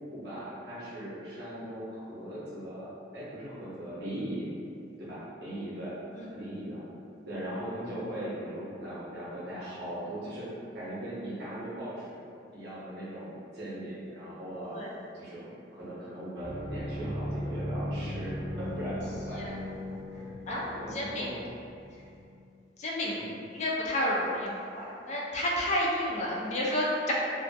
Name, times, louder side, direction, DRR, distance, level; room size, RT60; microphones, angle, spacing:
voice 1, 0.0-4.5 5.0-5.9 6.3-6.8 7.2-10.5 10.7-14.8 15.1-19.6 20.1-20.3 20.7-21.4 23.2-23.4, right 1 dB, 60° right, -9 dB, 0.8 m, -39 dB
sound 1, 16.4-22.2, equal, 25° right, 0.7 m, -37 dB
voice 2, 19.4-20.0 20.5-21.3 22.8-23.2 23.5-27.1, left 1 dB, 40° left, -4 dB, 0.3 m, -31 dB
2.5 x 2.4 x 2.2 m, 2.4 s
head